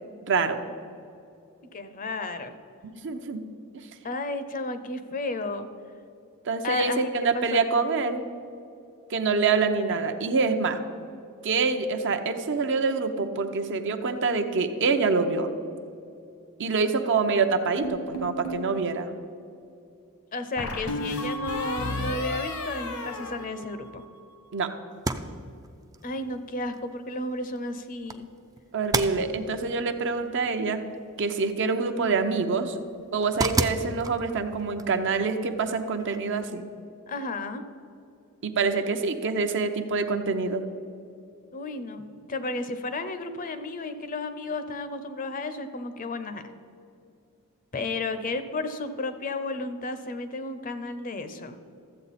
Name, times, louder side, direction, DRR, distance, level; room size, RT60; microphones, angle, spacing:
voice 1, 0.3-0.6 2.8-3.5 6.5-8.2 9.1-10.8 11.4-15.5 16.6-19.1 24.5-24.7 28.7-30.8 31.2-32.8 33.1-36.6 38.4-40.6, right 4 dB, 55° right, 7 dB, 0.7 m, -26 dB
voice 2, 1.7-2.5 4.0-5.7 6.6-7.8 20.3-24.0 26.0-28.3 37.1-37.6 41.5-42.0 42.3-46.4 47.7-51.6, left 2 dB, 40° left, 10 dB, 0.6 m, -33 dB
sound 1, 17.8-18.7 20.6-24.2, left 1 dB, 75° left, 1.2 m, -33 dB
sound 2, 24.9-36.5, right 3 dB, 15° right, 0.4 m, -36 dB
13.5 x 7.8 x 4.1 m, 2.6 s
head